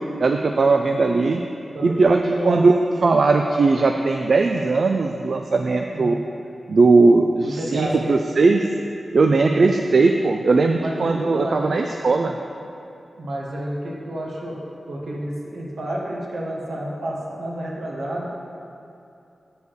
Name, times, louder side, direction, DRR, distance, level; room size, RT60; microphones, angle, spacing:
voice 1, 0.2-1.4 1.8-2.8 3.0-6.2 6.7-8.6 9.1-12.4, right 3 dB, 70° right, 4 dB, 0.4 m, -18 dB
voice 2, 1.7-2.6 5.9-6.2 7.4-8.1 9.4-9.7 10.8-11.8 13.2-14.6 14.9-18.3, right 1 dB, 85° right, -3 dB, 1.5 m, -30 dB
8.1 x 5.3 x 6.4 m, 2.7 s
cardioid pair, 60°, 0 cm